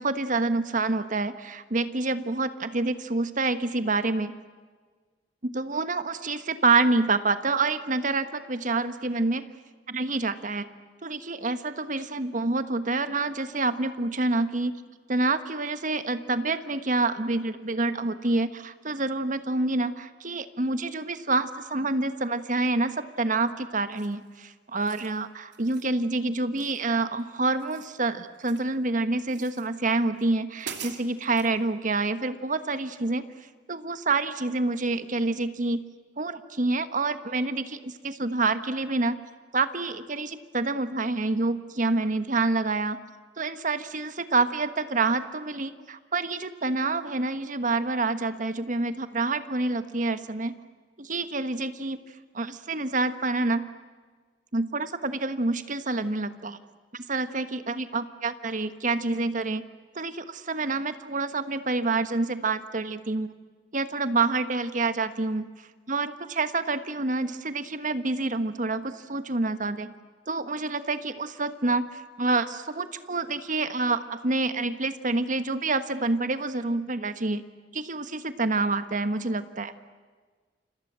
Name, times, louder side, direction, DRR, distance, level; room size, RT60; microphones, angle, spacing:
voice 1, 0.0-4.3 5.4-9.5 9.9-10.7 11.0-14.7 15.1-33.2 33.7-35.8 36.2-39.2 39.5-43.0 43.4-50.6 51.0-52.0 52.3-53.7 54.5-56.6 56.9-59.7 59.9-63.3 63.7-65.5 65.9-69.9 70.3-77.4 77.7-79.7, right 3 dB, 45° right, 11 dB, 1.4 m, -27 dB
sound 1, 23.9-24.3 24.7-25.1 25.5-25.9 26.6-27.2 27.5-28.7 29.3-29.7 30.2-30.3 30.6-31.5, right 7 dB, 85° right, 2.6 m, -43 dB
30.0 x 26.0 x 7.6 m, 1.5 s
head